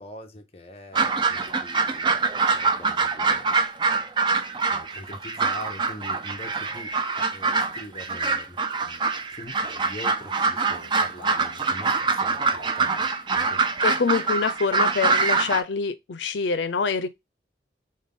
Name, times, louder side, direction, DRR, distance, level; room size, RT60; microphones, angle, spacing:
voice 1, 0.0-2.1 2.5-3.5 4.7-9.0 9.3-13.6, left 1 dB, 35° left, 0.7 m, -43 dB
sound 1, 0.9-15.6, right 4 dB, 25° right, 0.4 m, -24 dB
voice 2, 13.8-17.1, left 5 dB, 85° left, 0.5 m, -25 dB
5.2 x 2.2 x 3.5 m
head